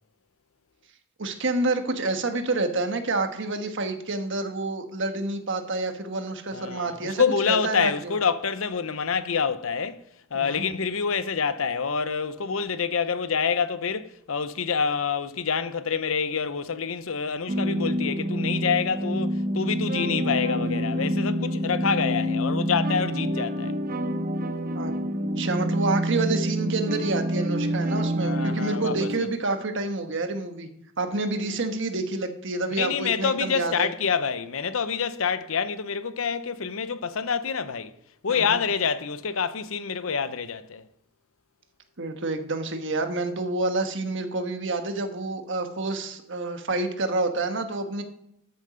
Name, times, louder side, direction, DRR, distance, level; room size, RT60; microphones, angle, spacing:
voice 1, 1.2-8.2 10.3-10.7 24.7-24.9 25.4-30.7 31.0-33.9 38.3-38.6 42.0-48.0, right 2 dB, 60° right, 1.3 m, -28 dB
voice 2, 6.5-10.0 10.3-23.7 28.2-29.3 32.8-37.9 38.2-40.8, left 6 dB, 70° left, 0.7 m, -27 dB
sound 1, 17.5-29.2, equal, 45° right, 0.8 m, -27 dB
13.5 x 7.2 x 5.1 m
head